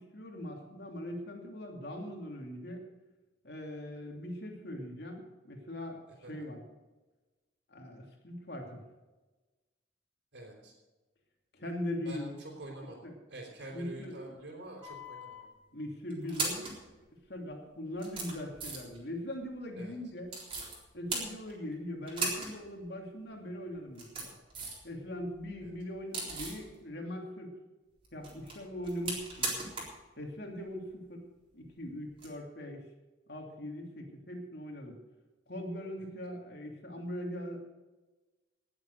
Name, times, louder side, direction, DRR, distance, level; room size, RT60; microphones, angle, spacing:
voice 1, 0.0-2.8 3.4-6.0 6.3-6.6 7.7-8.8 11.5-12.4 13.0-13.1 13.7-14.4 15.7-16.7 17.3-20.3 20.9-24.3 24.8-27.6 28.1-29.7 30.2-31.2 31.5-32.8 33.3-35.0 35.5-37.6, left 1 dB, 60° left, 1 dB, 2.9 m, -41 dB
voice 2, 10.3-10.7 12.0-13.0 13.3-15.4 19.8-19.9 25.6-25.7, right 1 dB, 75° right, -2 dB, 4.0 m, -46 dB
sound 1, 14.8-15.4 16.1-16.8 17.5-17.6 18.0-19.0 20.3-20.8 21.1-21.7 22.1-22.5 22.8-22.9 23.8-24.9 25.2-26.6 28.0-30.0 30.3-30.4 32.1-32.3, right 3 dB, 30° right, 3.9 m, -38 dB
18.5 x 7.7 x 6.5 m, 1.2 s
head